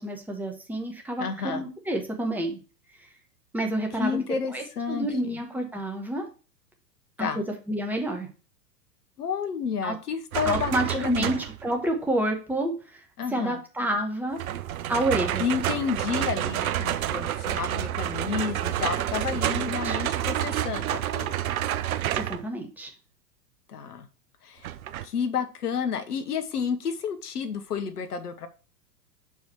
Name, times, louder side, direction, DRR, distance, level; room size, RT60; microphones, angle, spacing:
voice 1, 0.0-2.6 3.0-3.1 3.5-4.2 4.5-6.3 7.2-8.3 9.8-9.9 10.4-13.0 13.3-14.4 14.9-15.5 19.5-20.0 22.1-22.9, right 1 dB, 5° right, 2 dB, 1.1 m, -29 dB
voice 2, 1.2-1.7 4.0-5.4 7.2-7.4 9.2-11.4 13.2-13.6 15.4-21.4 23.7-24.1 24.4-24.7 25.0-28.5, left 6 dB, 65° left, 10 dB, 1.2 m, -31 dB
sound 1, 10.3-11.7 14.4-22.4 24.6-25.1, right 12 dB, 60° right, 0.6 m, -29 dB
6.2 x 4.8 x 4.2 m, 0.34 s
figure-of-eight pair, 105°, 49 cm